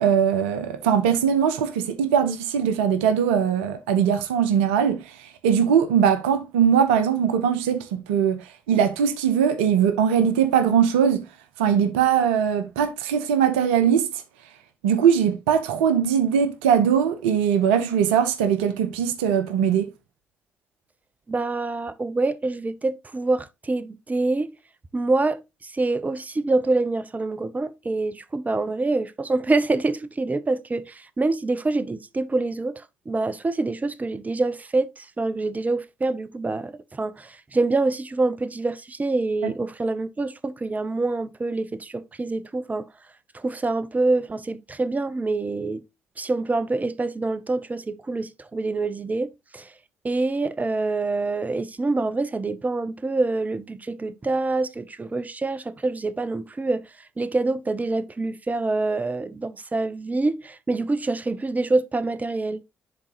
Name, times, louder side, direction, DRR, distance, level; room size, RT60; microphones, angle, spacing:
voice 1, 0.0-11.3 11.6-14.2 14.8-19.9 39.4-39.5, right 8 dB, 80° right, 0.6 m, -21 dB
voice 2, 21.3-24.5 24.9-42.8 43.3-45.8 46.2-49.7 50.0-56.9 57.2-62.6, right 3 dB, 25° right, 0.7 m, -26 dB
10.5 x 3.8 x 3.0 m
hypercardioid pair, 45°, 6 cm